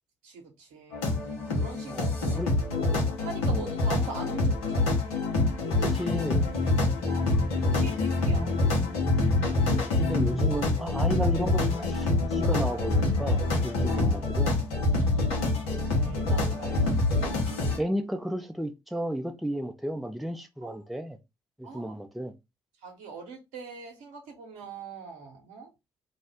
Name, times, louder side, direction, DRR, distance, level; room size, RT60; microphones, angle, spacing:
voice 1, 0.2-1.2 1.5-2.4 3.2-4.8 6.8-8.5 13.9-14.1 14.9-17.4 20.6-20.9 21.6-21.9 22.8-25.7, right 5 dB, 75° right, 1.0 m, -43 dB
sound 1, 0.9-17.8, left 2 dB, 80° left, 0.8 m, -26 dB
voice 2, 1.9-2.5 3.5-3.7 5.8-6.5 8.3-8.4 10.0-14.5 16.8-16.9 17.8-21.2 21.6-22.3, equal, ahead, 0.5 m, -33 dB
2.5 x 2.1 x 3.4 m
hypercardioid pair, 45°, 14 cm